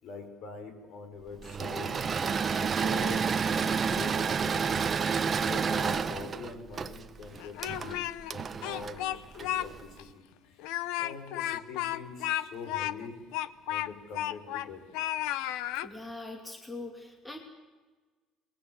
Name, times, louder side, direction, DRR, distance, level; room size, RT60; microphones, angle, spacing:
voice 1, 0.0-2.0 2.5-4.8 5.2-10.2 10.5-13.2 13.7-14.8, left 5 dB, 55° left, 6 dB, 5.8 m, -44 dB
Engine / Mechanisms, 1.4-9.8, right 6 dB, 25° right, 1.0 m, -30 dB
Speech, 7.4-8.3 8.6-9.7 10.0-10.1 10.6-14.7 14.9-15.9, left 13 dB, 85° left, 0.9 m, -33 dB
voice 2, 15.8-17.4, left 2 dB, 10° left, 4 dB, 2.6 m, -42 dB
29.5 x 21.5 x 8.2 m, 1.3 s
cardioid pair, 150°, 0 cm